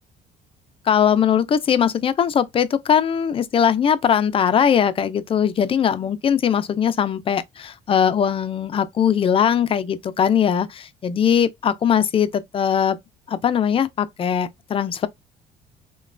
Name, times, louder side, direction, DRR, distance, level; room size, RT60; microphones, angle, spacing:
voice 1, 0.9-13.0 13.3-15.1, left 8 dB, 35° left, 0.4 m, -20 dB
3.0 x 2.2 x 2.4 m
cardioid pair, 110°, 17 cm